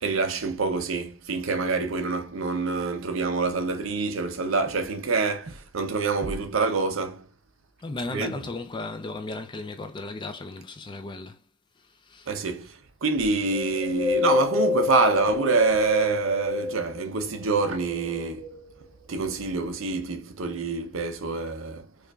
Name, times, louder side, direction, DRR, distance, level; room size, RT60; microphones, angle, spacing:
voice 1, 0.0-7.3 8.0-8.5 12.3-18.6 19.1-21.9, right 4 dB, 75° right, 0.6 m, -26 dB
voice 2, 7.8-11.4 12.1-12.3, left 2 dB, 25° left, 0.3 m, -35 dB
Wind, 13.5-17.1 17.6-18.9 19.4-19.5, left 5 dB, 25° right, 0.7 m, -28 dB
4.9 x 2.5 x 2.3 m
head